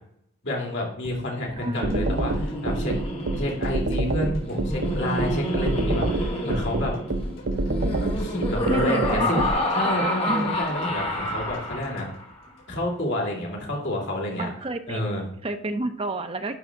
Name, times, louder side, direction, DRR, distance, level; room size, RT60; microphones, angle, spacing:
voice 1, 0.4-2.9 3.3-6.9 8.0-9.4 9.7-12.1 12.7-14.5 14.9-15.2, left 1 dB, 60° left, -2 dB, 2.9 m, -29 dB
sound 1, 1.0-13.2 13.5-13.6, left 1 dB, 80° left, 4.0 m, -45 dB
voice 2, 1.6-2.0 8.7-9.7 10.3-10.6 14.4-16.5, right 1 dB, 30° right, 8 dB, 0.7 m, -30 dB
Laughter, 1.8-12.2, left 1 dB, 30° left, 1.6 m, -29 dB
sound 2, 1.8-9.5, right 2 dB, 60° right, 0.8 m, -26 dB
11.0 x 5.6 x 3.7 m, 0.71 s
head